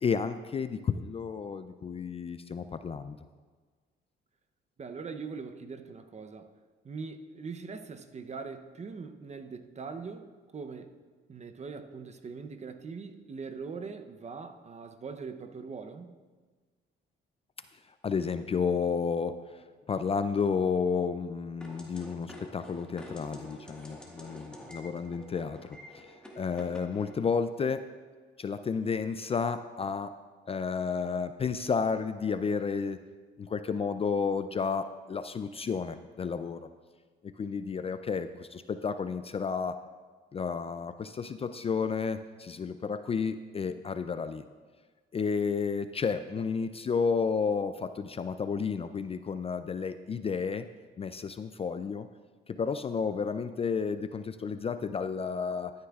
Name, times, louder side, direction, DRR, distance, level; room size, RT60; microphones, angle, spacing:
voice 1, 0.0-3.2 18.0-19.4 19.9-25.6 25.9-26.0 26.4-27.9 28.4-30.1 30.5-33.0 33.4-36.6 37.4-39.8 40.3-44.4 45.1-50.7 51.0-52.1 52.5-55.7, left 5 dB, 30° left, 11 dB, 0.3 m, -31 dB
voice 2, 4.8-6.5 6.8-10.9 11.3-16.2, right 5 dB, 35° right, 8 dB, 0.7 m, -41 dB
sound 1, 21.6-27.1, equal, 5° left, 1.5 m, -48 dB
13.0 x 9.5 x 2.4 m, 1.4 s
cardioid pair, 90°, 20 cm